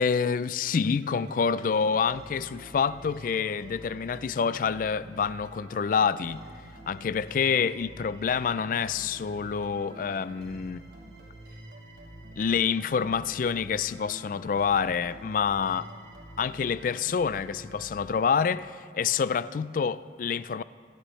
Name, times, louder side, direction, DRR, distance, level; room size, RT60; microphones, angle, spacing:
voice 1, 0.0-6.4 6.9-10.8 12.4-15.9 16.4-20.6, left 6 dB, 45° left, 0.3 m, -27 dB
sound 1, 1.0-18.5, right 1 dB, 70° right, 3.2 m, -47 dB
26.5 x 13.0 x 3.2 m
head